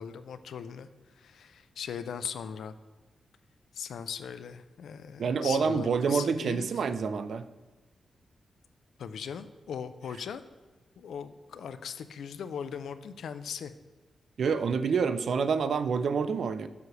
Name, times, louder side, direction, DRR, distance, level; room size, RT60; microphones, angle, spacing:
voice 1, 0.0-2.8 3.7-6.7 9.0-10.4 11.0-13.7, left 7 dB, 85° left, 12 dB, 0.4 m, -39 dB
voice 2, 5.2-7.5 14.4-16.7, right 5 dB, 60° right, 11 dB, 0.4 m, -27 dB
7.0 x 3.2 x 6.0 m, 1.3 s
wide cardioid pair, 150°, 0 cm